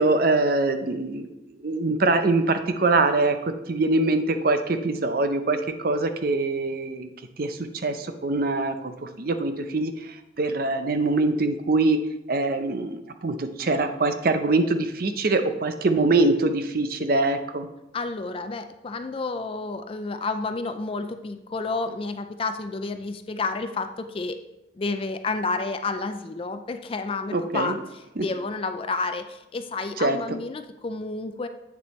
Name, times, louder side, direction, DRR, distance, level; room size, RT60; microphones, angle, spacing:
voice 1, 0.0-1.3 1.6-3.4 3.7-7.1 7.4-12.0 12.3-17.7 27.3-27.8 28.2-28.3 30.0-30.2, right 2 dB, 50° right, 8 dB, 0.6 m, -23 dB
voice 2, 17.9-24.4 24.8-31.5, left 3 dB, 30° left, 9 dB, 0.4 m, -30 dB
8.3 x 6.9 x 3.1 m, 0.91 s
head